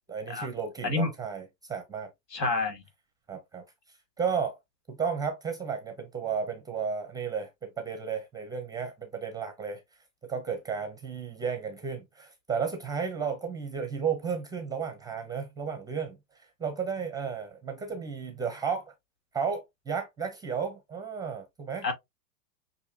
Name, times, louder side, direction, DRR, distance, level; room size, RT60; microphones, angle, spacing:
voice 1, 0.1-2.1 3.3-4.6 4.9-9.8 10.2-18.9 19.3-21.9, right 6 dB, 10° right, 0.5 m, -33 dB
voice 2, 2.3-2.8 21.8-21.9, left 3 dB, 80° left, 2.5 m, -28 dB
6.5 x 2.6 x 2.6 m
hypercardioid pair, 110°, 49 cm